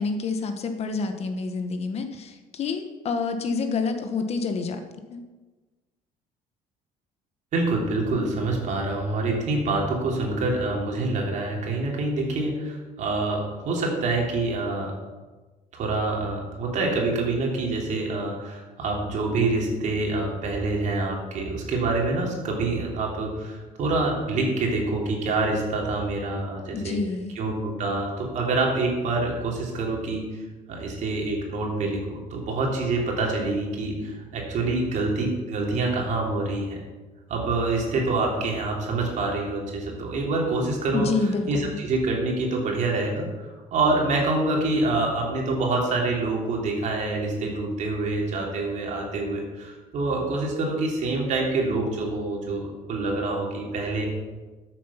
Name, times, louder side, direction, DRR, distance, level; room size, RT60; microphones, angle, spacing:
voice 1, 0.0-4.8 5.1-5.2 26.7-27.3 40.9-41.8, left 4 dB, 40° left, 7 dB, 1.2 m, -28 dB
voice 2, 7.5-14.9 15.7-27.0 27.4-30.4 30.7-36.8 37.3-41.1 41.5-54.1, right 2 dB, 50° right, 0 dB, 3.3 m, -26 dB
13.5 x 7.7 x 5.7 m, 1.2 s
cardioid pair, 150°, 16 cm